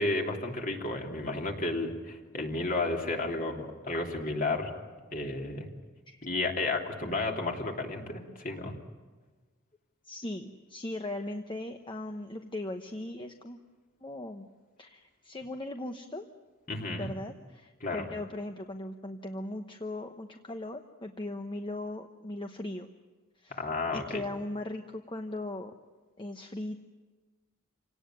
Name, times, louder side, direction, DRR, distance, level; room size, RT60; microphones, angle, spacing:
voice 1, 0.0-4.7 5.1-5.7 6.2-8.7 16.7-17.1 17.8-18.1 23.5-24.3, left 2 dB, 40° left, 1 dB, 3.3 m, -32 dB
voice 2, 7.0-7.3 10.0-13.6 14.0-14.5 14.8-16.3 17.0-22.9 23.4-23.6 23.9-25.7 26.2-26.8, left 1 dB, 25° left, 5 dB, 1.0 m, -38 dB
28.5 x 18.0 x 9.3 m, 1.3 s
head